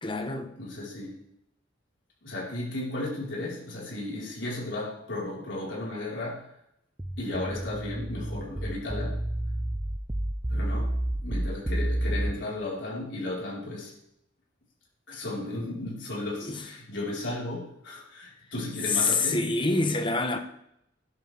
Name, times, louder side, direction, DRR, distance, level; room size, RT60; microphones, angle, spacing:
voice 1, 0.0-0.5 16.4-16.6 18.8-20.4, left 3 dB, 25° left, 1.0 m, -26 dB
voice 2, 0.6-1.2 2.2-6.5 7.2-9.2 10.5-11.0 11.2-13.9 15.1-19.4, left 2 dB, 75° left, 4.4 m, -34 dB
sound 1, 7.0-12.3, right 1 dB, 10° right, 0.5 m, -30 dB
13.5 x 10.5 x 3.5 m
head